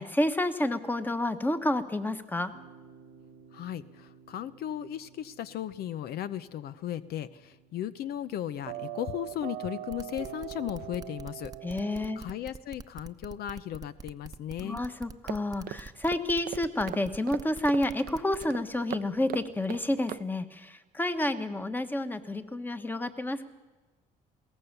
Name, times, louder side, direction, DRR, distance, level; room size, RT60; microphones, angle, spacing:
voice 1, 0.0-2.5 11.6-12.2 14.6-23.5, left 1 dB, 10° left, 10 dB, 1.3 m, -30 dB
sound 1, 2.5-12.2, right 12 dB, 90° right, 1.5 m, -45 dB
voice 2, 3.5-14.8, left 11 dB, 65° left, 14 dB, 0.7 m, -36 dB
sound 2, 9.9-18.5, right 5 dB, 20° right, 0.9 m, -45 dB
sound 3, 15.3-20.2, right 13 dB, 60° right, 0.6 m, -41 dB
22.0 x 17.5 x 6.8 m, 1.2 s
cardioid pair, 110°, 17 cm